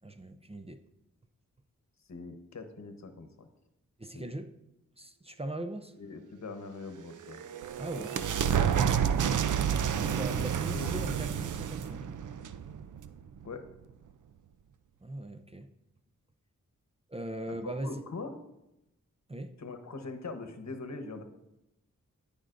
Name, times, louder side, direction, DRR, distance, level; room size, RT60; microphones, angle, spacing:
voice 1, 0.0-0.8 4.0-4.5 5.0-5.9 7.8-8.2 10.0-12.0 15.0-15.7 17.1-18.0 19.3-19.5, right 1 dB, 20° right, 8 dB, 0.6 m, -39 dB
voice 2, 2.1-3.5 4.1-4.3 6.0-7.4 8.0-8.1 8.4-9.2 10.4-11.2 13.4-13.6 17.6-18.3 19.6-21.2, left 3 dB, 60° left, 6 dB, 1.1 m, -42 dB
sound 1, 7.0-13.5, right 8 dB, 70° right, 0.5 m, -30 dB
14.0 x 5.2 x 2.6 m, 0.89 s
cardioid pair, 50°, 31 cm